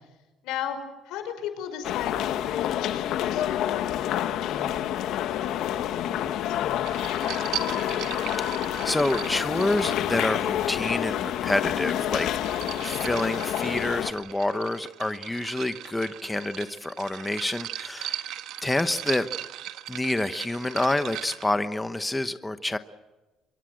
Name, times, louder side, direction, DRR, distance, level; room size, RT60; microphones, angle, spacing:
voice 1, 0.4-0.8 1.0-6.9, left 9 dB, 90° left, 8 dB, 5.3 m, -37 dB
sound 1, 1.8-14.1, left 11 dB, 70° left, 1.4 m, -28 dB
sound 2, 6.8-10.8 12.0-21.5, right 12 dB, 75° right, 1.5 m, -38 dB
voice 2, 8.5-12.4 12.8-18.2 18.6-19.3 19.9-22.8, left 2 dB, 10° left, 10 dB, 1.0 m, -28 dB
25.5 x 22.0 x 7.8 m, 1.1 s
cardioid pair, 140°, 0 cm